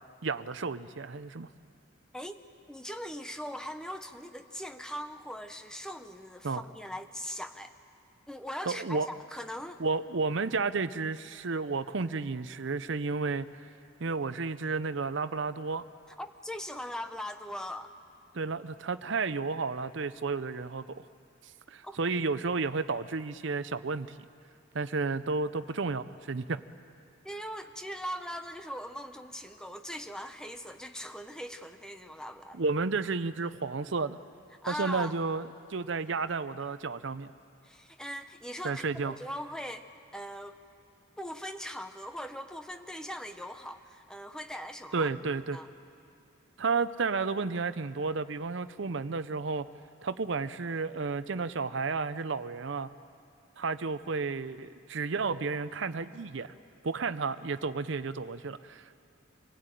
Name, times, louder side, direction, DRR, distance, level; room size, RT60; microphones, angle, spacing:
voice 1, 0.2-1.5 6.4-6.6 8.7-9.1 9.8-13.5 14.0-15.9 18.3-21.0 21.7-24.1 24.7-26.6 32.5-34.2 34.7-37.3 38.6-39.2 44.9-45.6 46.6-49.7 50.0-52.9 53.6-56.5 56.8-59.0, right 4 dB, 60° right, 13 dB, 0.6 m, -32 dB
voice 2, 2.7-7.7 8.3-9.8 16.2-17.9 21.8-22.0 27.2-32.6 34.6-35.2 37.6-39.9 40.1-40.6 41.2-45.1 45.5-45.7, equal, 5° left, 8 dB, 0.7 m, -40 dB
25.5 x 16.5 x 9.1 m, 2.5 s
head